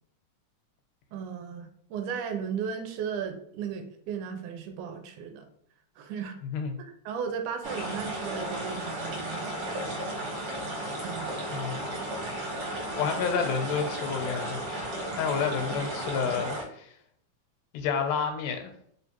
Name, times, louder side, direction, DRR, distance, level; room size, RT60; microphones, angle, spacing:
voice 1, 1.1-5.5 6.0-6.4 7.1-9.9 11.0-11.4, right 7 dB, 80° right, 5 dB, 2.0 m, -36 dB
voice 2, 6.4-6.8 11.5-11.9 13.0-14.9 15.2-16.9 17.7-18.7, left 6 dB, 80° left, 5 dB, 2.1 m, -30 dB
sound 1, 7.6-16.6, right 1 dB, 55° right, 1.8 m, -34 dB
4.4 x 3.2 x 2.9 m, 0.67 s
omnidirectional pair, 3.7 m